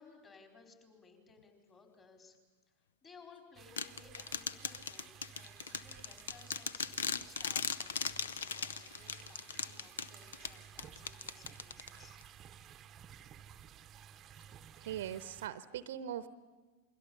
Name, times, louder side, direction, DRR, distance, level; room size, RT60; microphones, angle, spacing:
voice 1, 0.0-2.4 3.0-12.2, left 4 dB, 25° left, 3 dB, 4.5 m, -60 dB
sound 1, 3.5-15.5, right 9 dB, 25° right, 0.9 m, -55 dB
sound 2, 3.8-12.2, left 7 dB, 65° left, 0.7 m, -39 dB
voice 2, 14.8-16.3, right 10 dB, 55° right, 15 dB, 0.9 m, -40 dB
28.0 x 22.0 x 7.1 m, 1.3 s
figure-of-eight pair, 90°, 0 cm